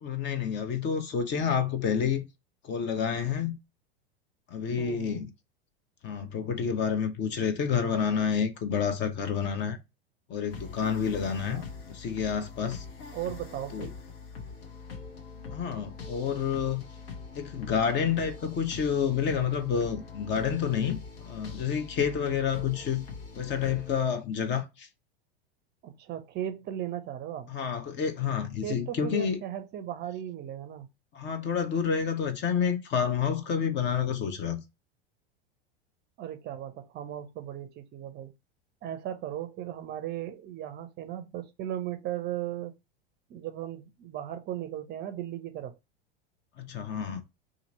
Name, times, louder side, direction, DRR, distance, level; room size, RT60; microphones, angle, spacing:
voice 1, 0.0-2.2 2.6-3.6 4.5-5.3 6.0-9.8 10.3-12.8 13.7-13.9 15.5-16.8 17.3-23.1 23.4-24.9 27.5-29.4 31.1-34.6 46.6-47.2, left 7 dB, 35° left, 0.8 m, -29 dB
voice 2, 4.8-5.2 11.5-11.6 13.1-13.9 25.8-27.5 28.6-30.9 36.2-38.3 38.8-42.7 43.3-45.8, right 11 dB, 35° right, 0.6 m, -37 dB
sound 1, 10.5-24.0, left 5 dB, 65° left, 1.1 m, -43 dB
2.8 x 2.5 x 4.0 m
hypercardioid pair, 100°, 30 cm